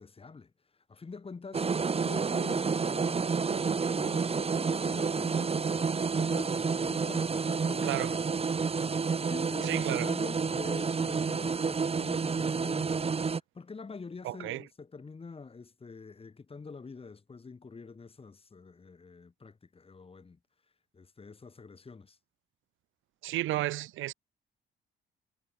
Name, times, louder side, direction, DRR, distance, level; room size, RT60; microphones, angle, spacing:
voice 1, 0.0-1.8 2.0-8.3 8.7-20.4 20.9-22.2, left 4 dB, 30° left, 2.6 m, -46 dB
sound 1, 1.5-13.4, right 5 dB, 30° right, 1.4 m, -29 dB
voice 2, 7.8-8.1 9.6-10.1 14.2-14.6 23.2-24.1, right 16 dB, 85° right, 0.9 m, -32 dB
cardioid pair, 90°, 20 cm